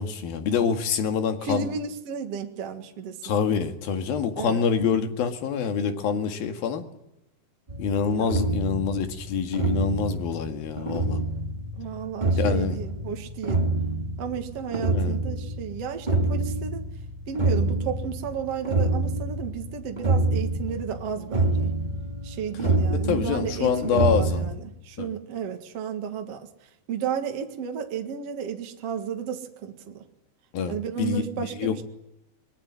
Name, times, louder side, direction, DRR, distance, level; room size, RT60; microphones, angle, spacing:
voice 1, 0.0-1.7 3.2-6.8 7.8-11.2 12.4-12.8 14.9-15.2 23.1-24.4 25.0-25.1 30.5-31.2 31.6-31.8, left 6 dB, 60° left, 7 dB, 3.6 m, -26 dB
voice 2, 1.4-3.5 4.4-4.7 8.1-8.3 11.8-13.7 14.2-16.8 17.3-21.7 22.2-26.5 26.9-30.0 30.6-31.8, right 7 dB, 50° right, 5 dB, 2.1 m, -33 dB
sound 1, 7.7-24.5, right 2 dB, 25° right, 1.0 m, -27 dB
24.0 x 22.0 x 9.8 m, 0.86 s
omnidirectional pair, 4.9 m